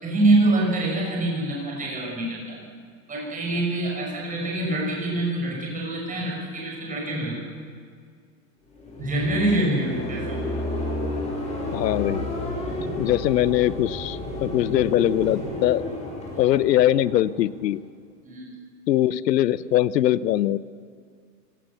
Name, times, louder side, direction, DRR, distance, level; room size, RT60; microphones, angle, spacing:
voice 1, 0.0-2.6 3.1-7.5 9.0-10.5 12.8-12.9 16.3-16.4 18.2-18.5, right 2 dB, 15° right, -2 dB, 6.6 m, -25 dB
sound 1, 8.7-17.8, left 1 dB, 15° left, 6.8 m, -31 dB
voice 2, 11.7-12.2 13.0-15.8 16.4-17.8 18.9-20.6, left 13 dB, 75° left, 19 dB, 0.9 m, -21 dB
25.0 x 17.5 x 7.0 m, 2.1 s
hypercardioid pair, 135°, 49 cm